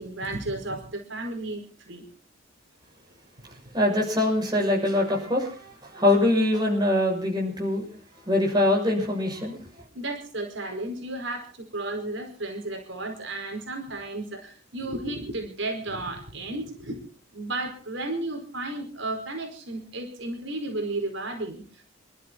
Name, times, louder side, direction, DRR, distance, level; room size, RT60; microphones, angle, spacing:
voice 1, 0.0-2.0 9.9-17.0 17.3-21.8, right 2 dB, 65° right, 3 dB, 4.9 m, -33 dB
voice 2, 3.7-5.5 5.9-7.8 8.3-9.6, left 1 dB, 20° right, -1 dB, 6.5 m, -23 dB
27.5 x 12.5 x 4.1 m, 0.40 s
head